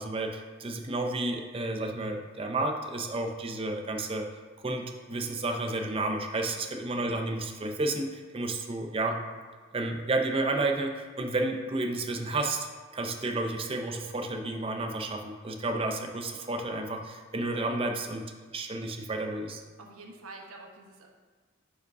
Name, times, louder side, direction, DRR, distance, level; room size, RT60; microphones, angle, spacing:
voice 1, 0.0-4.3 4.6-9.2 9.7-12.7 12.9-18.3 18.5-19.6, right 2 dB, 25° right, 4 dB, 0.5 m, -31 dB
voice 2, 6.5-6.8 19.8-21.1, right 2 dB, 90° right, 1 dB, 1.0 m, -48 dB
9.2 x 4.9 x 2.6 m, 1.5 s
head